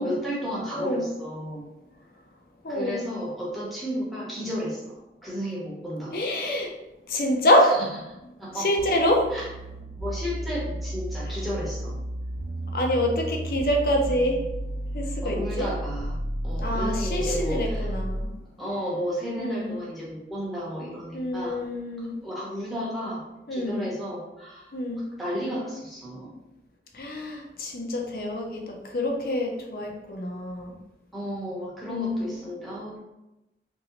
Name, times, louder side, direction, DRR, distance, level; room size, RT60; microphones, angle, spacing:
voice 1, 0.0-1.7 2.7-6.1 7.6-7.9 8.4-8.7 9.3-9.5 10.0-12.0 15.2-16.2 16.4-17.9 18.6-21.6 22.0-23.2 23.5-24.7 25.0-26.3 31.1-33.0, equal, ahead, -7 dB, 0.8 m, -33 dB
voice 2, 0.8-1.1 2.6-3.1 6.1-6.7 7.1-7.8 8.5-9.2 12.7-14.4 14.9-15.7 16.6-18.3 19.4-19.8 21.1-22.2 23.5-23.9 24.7-25.1 26.9-30.8 31.9-32.2, left 1 dB, 55° left, 2 dB, 0.5 m, -26 dB
sound 1, 8.8-18.4, right 1 dB, 85° right, 0.4 m, -32 dB
2.9 x 2.7 x 2.9 m, 0.97 s
head